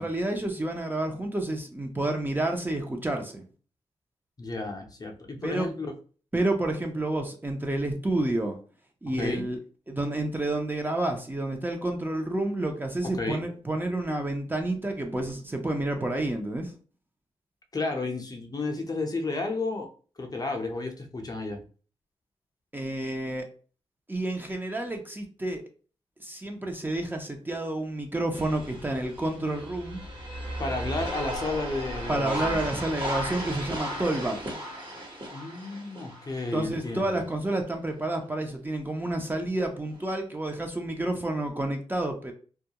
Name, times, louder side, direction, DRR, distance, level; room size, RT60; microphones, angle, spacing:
voice 1, 0.0-3.4 5.4-5.7 6.3-8.6 9.0-9.6 9.9-16.7 22.7-23.5 24.1-25.6 26.2-30.0 32.1-34.4 36.5-42.3, right 1 dB, 15° right, 3 dB, 0.5 m, -29 dB
voice 2, 4.4-5.9 9.2-9.5 13.0-13.4 17.7-19.9 20.2-21.6 30.6-32.6 35.3-37.2, left 3 dB, 35° left, 3 dB, 0.6 m, -32 dB
sound 1, 28.3-36.9 37.5-37.6 39.9-40.0, equal, 45° right, 1.1 m, -35 dB
2.3 x 2.1 x 2.8 m, 0.39 s
cardioid pair, 60°, 11 cm